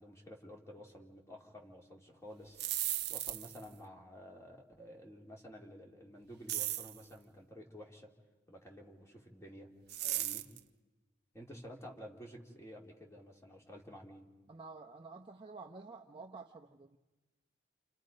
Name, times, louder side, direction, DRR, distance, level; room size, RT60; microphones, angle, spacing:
voice 1, 0.0-2.6 3.1-8.1 8.5-9.7 10.1-10.4 11.3-14.3, equal, 15° left, 0 dB, 2.8 m, -52 dB
sound 1, 2.4-3.7 6.5-7.0 9.9-10.6, right 13 dB, 55° right, 1.1 m, -36 dB
voice 2, 14.5-17.0, right 3 dB, 25° right, 3 dB, 0.9 m, -50 dB
29.0 x 29.0 x 5.3 m, 1.1 s
head